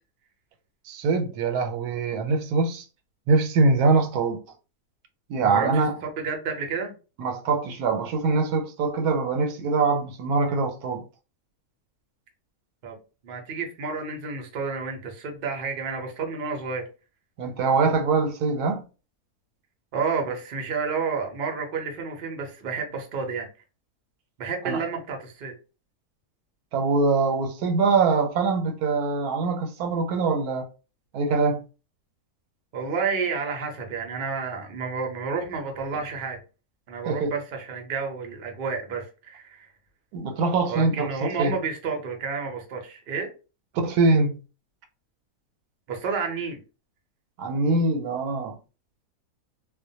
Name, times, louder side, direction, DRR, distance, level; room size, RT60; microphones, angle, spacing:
voice 1, 0.9-2.8 3.3-4.4 5.3-5.9 7.2-11.0 17.4-18.8 24.6-24.8 26.7-30.7 31.1-31.6 37.1-37.3 40.1-41.5 43.7-44.4 47.4-48.6, right 4 dB, 85° right, 1.1 m, -23 dB
voice 2, 5.4-6.9 12.8-13.0 13.2-16.9 19.9-23.5 24.4-25.5 32.7-36.4 36.9-39.7 40.7-43.3 45.9-46.6, right 5 dB, 55° right, 0.6 m, -30 dB
2.4 x 2.1 x 2.7 m
omnidirectional pair, 1.6 m